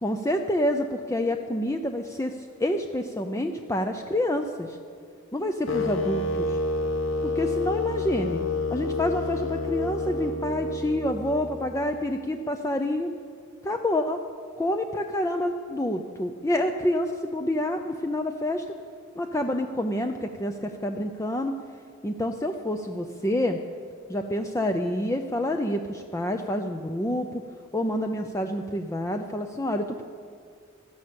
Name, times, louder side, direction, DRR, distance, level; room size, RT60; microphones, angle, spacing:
voice 1, 0.0-4.8 5.3-6.6 7.2-8.4 8.7-13.1 13.6-14.2 14.6-18.6 19.1-21.5 22.0-23.6 24.1-27.4 27.7-30.0, left 1 dB, 15° left, 5 dB, 0.5 m, -28 dB
sound 1, 5.7-11.8, left 2 dB, 65° left, 1.3 m, -29 dB
16.5 x 12.0 x 7.0 m, 2.3 s
head